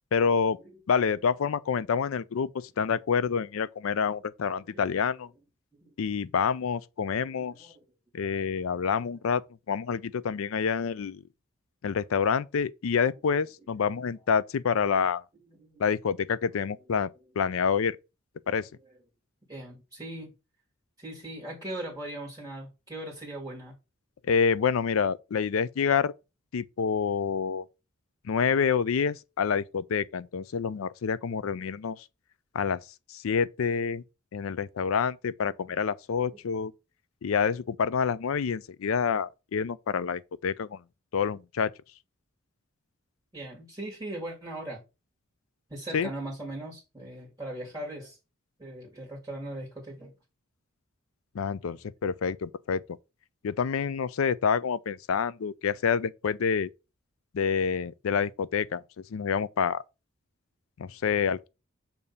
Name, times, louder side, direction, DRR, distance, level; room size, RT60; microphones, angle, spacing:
voice 1, 0.1-0.6 0.9-5.3 6.0-7.5 8.1-9.4 9.7-11.2 11.8-15.2 15.8-17.1 17.4-18.0 18.5-18.7 24.3-26.1 26.5-27.6 28.2-32.0 32.5-32.8 33.1-34.0 34.3-36.7 37.2-40.8 41.1-41.7 45.9-46.1 51.3-52.8 53.4-56.7 57.3-58.8 59.1-59.8 60.8-61.5, left 6 dB, 85° left, 0.4 m, -27 dB
voice 2, 7.1-7.8 15.5-15.8 19.5-20.3 21.0-23.7 43.3-44.8 45.7-48.2 48.6-50.1, right 1 dB, 20° right, 1.7 m, -39 dB
6.8 x 2.7 x 5.3 m
head